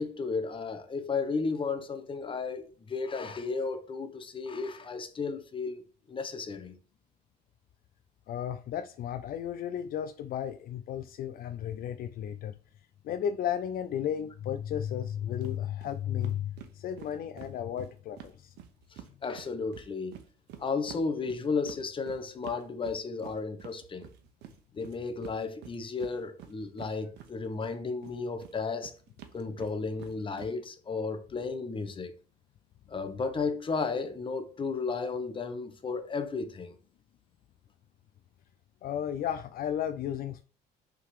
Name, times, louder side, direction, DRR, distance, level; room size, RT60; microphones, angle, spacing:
voice 1, 0.0-5.8 6.1-6.8 18.9-20.2 20.6-24.1 24.7-28.9 29.3-32.1 32.9-36.8, left 4 dB, 30° left, 1.1 m, -34 dB
voice 2, 8.3-12.6 13.0-18.5 38.8-40.4, left 9 dB, 60° left, 0.5 m, -34 dB
sound 1, 15.4-15.6 15.8-15.9 16.2-19.1 19.4-27.7 28.0-30.5, right 10 dB, 85° right, 1.0 m, -48 dB
5.6 x 3.9 x 4.9 m
cardioid pair, 110°, 17 cm